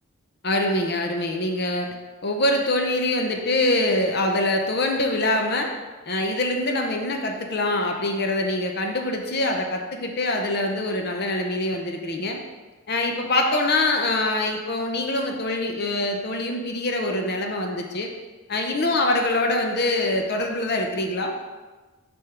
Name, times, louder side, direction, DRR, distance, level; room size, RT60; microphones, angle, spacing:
voice 1, 0.4-1.9 2.2-5.7 6.1-12.4 12.9-18.1 18.5-21.4, left 2 dB, 45° left, 2 dB, 0.6 m, -24 dB
6.5 x 3.5 x 5.8 m, 1.3 s
head